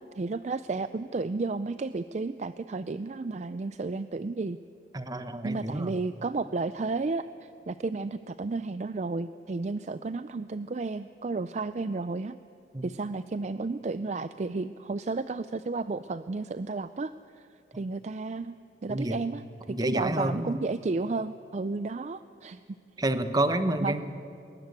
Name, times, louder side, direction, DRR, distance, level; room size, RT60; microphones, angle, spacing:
voice 1, 0.2-4.6 5.4-12.4 12.8-17.1 17.8-18.6 18.8-19.4 19.8-22.6 23.8-23.9, right 3 dB, 40° right, 13 dB, 0.4 m, -32 dB
voice 2, 4.9-6.0 12.7-12.8 18.9-19.2 19.7-20.6 23.0-24.0, right 1 dB, 20° right, 10 dB, 1.0 m, -29 dB
21.0 x 19.0 x 8.1 m, 2.6 s
head